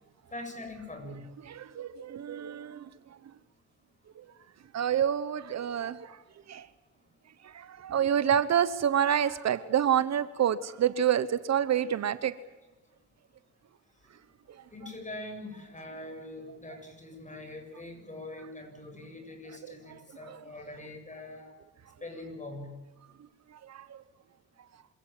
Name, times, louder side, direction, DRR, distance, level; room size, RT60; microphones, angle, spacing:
voice 1, 0.3-1.3 14.7-21.5 22.0-22.8, left 2 dB, 25° left, 7.6 m, -43 dB
voice 2, 1.5-2.9 4.7-6.2 6.5-6.7 7.4-12.3 20.3-20.4 23.7-24.0, right 9 dB, 60° right, 1.0 m, -28 dB
26.5 x 17.0 x 9.1 m
cardioid pair, 85°, 30 cm